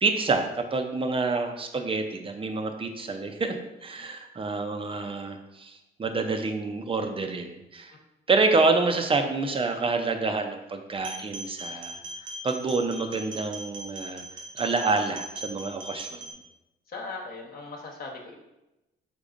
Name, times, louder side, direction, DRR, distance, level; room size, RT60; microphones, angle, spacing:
voice 1, 0.0-3.5 3.8-7.9 8.3-12.0 12.4-14.2 14.5-16.2, right 3 dB, 25° right, 5 dB, 0.6 m, -27 dB
sound 1, 11.0-16.3, right 2 dB, 80° right, 1.1 m, -39 dB
voice 2, 16.9-18.3, left 3 dB, 50° left, 0 dB, 1.1 m, -38 dB
5.1 x 3.9 x 2.5 m, 0.96 s
cardioid pair, 90°, 20 cm